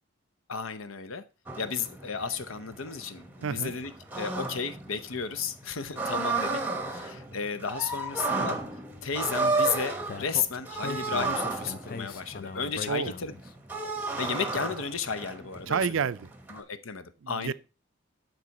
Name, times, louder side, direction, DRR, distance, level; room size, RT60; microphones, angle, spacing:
voice 1, 0.5-1.2 1.6-6.6 6.9-8.6 9.0-13.3 14.2-15.8 16.5-17.5, left 6 dB, 70° left, 0.8 m, -33 dB
sound 1, 1.5-16.6, right 3 dB, 10° right, 0.9 m, -33 dB
voice 2, 3.4-3.7 12.9-13.1 15.7-16.3 17.2-17.5, right 6 dB, 65° right, 0.4 m, -29 dB
Speech, 10.1-13.5, left 5 dB, 40° left, 0.4 m, -39 dB
12.5 x 4.7 x 4.1 m
head